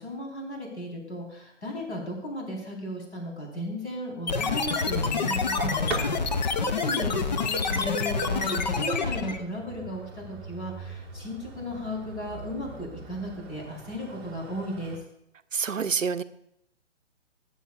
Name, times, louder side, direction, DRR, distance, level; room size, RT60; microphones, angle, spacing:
voice 1, 0.0-15.0, equal, 60° left, 0 dB, 3.9 m, -35 dB
sound 1, 4.3-9.4, left 4 dB, 35° left, 0.6 m, -27 dB
sound 2, 5.6-15.0, right 4 dB, 15° right, 0.9 m, -42 dB
voice 2, 15.5-16.2, right 6 dB, 90° right, 12 dB, 0.6 m, -27 dB
20.0 x 7.2 x 2.4 m, 0.76 s
figure-of-eight pair, 135°, 38 cm